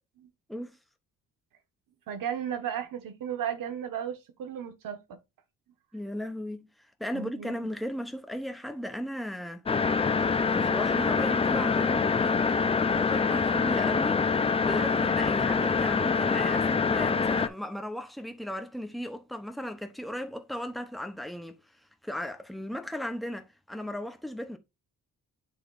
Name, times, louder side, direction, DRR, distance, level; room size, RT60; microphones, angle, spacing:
voice 1, 2.1-5.2 7.1-7.7, right 9 dB, 85° right, 1.1 m, -35 dB
voice 2, 5.9-6.7 7.0-9.9 10.2-21.6 22.0-24.6, equal, ahead, 0.8 m, -36 dB
sound 1, 9.7-17.5, left 5 dB, 20° left, 0.4 m, -25 dB
8.2 x 3.2 x 3.8 m
cardioid pair, 125°, 32 cm